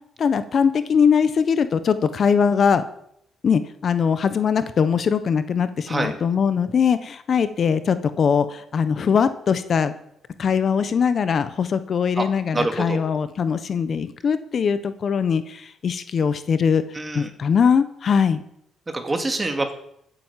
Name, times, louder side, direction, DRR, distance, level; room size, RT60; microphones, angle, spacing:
voice 1, 0.2-2.8 3.4-9.9 10.4-16.8 17.1-18.4, left 6 dB, 50° left, 12 dB, 1.0 m, -21 dB
voice 2, 12.5-13.0 16.9-17.3 18.9-19.7, right 2 dB, 20° right, 6 dB, 2.6 m, -25 dB
15.5 x 9.3 x 7.5 m, 0.73 s
cardioid pair, 90°, 0 cm